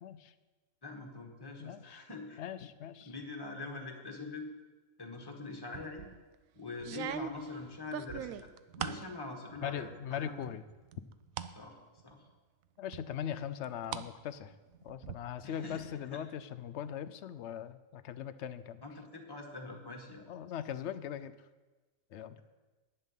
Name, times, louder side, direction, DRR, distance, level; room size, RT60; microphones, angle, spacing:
voice 1, 0.0-0.3 1.6-2.0 2.4-3.1 9.6-10.6 12.8-14.5 14.8-18.8 20.3-21.3 22.1-22.4, left 9 dB, 65° left, 13 dB, 0.7 m, -40 dB
voice 2, 0.8-2.4 3.0-4.5 5.0-6.1 6.5-8.5 8.8-10.3 11.5-11.8 12.0-12.2 15.4-16.2 18.8-20.3, left 3 dB, 15° left, 1 dB, 1.5 m, -44 dB
sound 1, 5.7-6.2 6.8-9.1 9.5-10.1 10.4-11.5 12.0-12.1 12.9-14.1 14.4-15.1, right 10 dB, 75° right, 1.0 m, -41 dB
11.0 x 9.1 x 5.7 m, 1.2 s
omnidirectional pair, 1.5 m